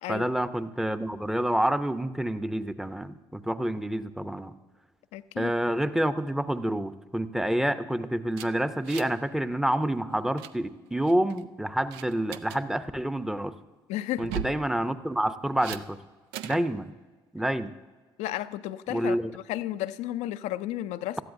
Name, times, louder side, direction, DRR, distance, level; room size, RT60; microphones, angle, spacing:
voice 1, 0.1-4.5 5.4-13.5 14.2-16.0 16.4-16.9 17.3-17.7 18.9-19.3, right 1 dB, 5° right, 0.7 m, -28 dB
voice 2, 5.1-5.5 13.9-14.2 18.2-21.2, left 13 dB, 70° left, 0.4 m, -33 dB
sound 1, 8.3-9.3 9.5-9.7 10.1-10.5 11.1-11.4 11.9-12.6 14.1-14.6 15.6-15.8 16.3-16.7, right 9 dB, 85° right, 0.4 m, -38 dB
18.5 x 13.0 x 2.6 m
hypercardioid pair, 50°, 12 cm